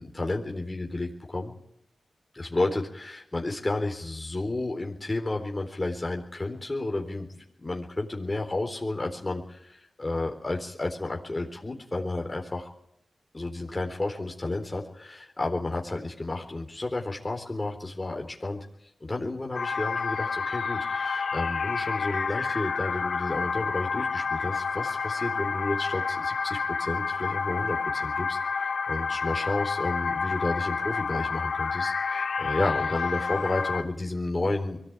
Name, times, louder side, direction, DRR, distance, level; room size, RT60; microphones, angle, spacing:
voice 1, 0.0-1.5 2.3-7.3 7.6-12.7 13.3-18.7 19.0-34.8, left 2 dB, 30° left, 1 dB, 3.9 m, -31 dB
sound 1, 19.5-33.8, left 5 dB, 80° left, 2.3 m, -29 dB
22.5 x 17.5 x 9.0 m, 0.81 s
cardioid pair, 50°, 0 cm